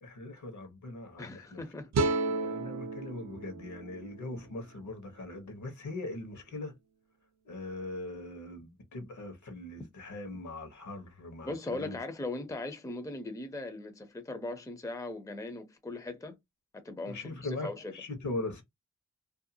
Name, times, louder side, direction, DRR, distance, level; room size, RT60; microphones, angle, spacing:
voice 1, 0.0-1.6 2.3-6.7 7.4-12.0 17.0-18.6, left 2 dB, 70° left, 1.0 m, -40 dB
voice 2, 1.2-2.1 11.4-16.4 16.7-17.9, left 2 dB, 10° left, 0.5 m, -39 dB
sound 1, 1.9-5.1, right 3 dB, 60° right, 0.5 m, -33 dB
2.6 x 2.2 x 2.6 m
wide cardioid pair, 110°, 31 cm